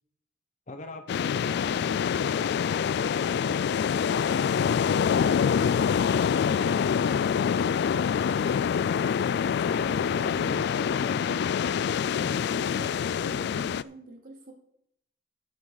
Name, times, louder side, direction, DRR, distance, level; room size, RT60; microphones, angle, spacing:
voice 1, 0.7-8.7 9.6-11.4 12.2-12.5, left 1 dB, 40° left, 7 dB, 1.0 m, -42 dB
sound 1, 1.1-13.8, left 7 dB, 60° left, 0.3 m, -26 dB
voice 2, 9.4-11.5 12.5-13.0 13.2-14.5, right 2 dB, 50° right, 1 dB, 2.6 m, -47 dB
12.5 x 9.2 x 4.0 m, 0.72 s
head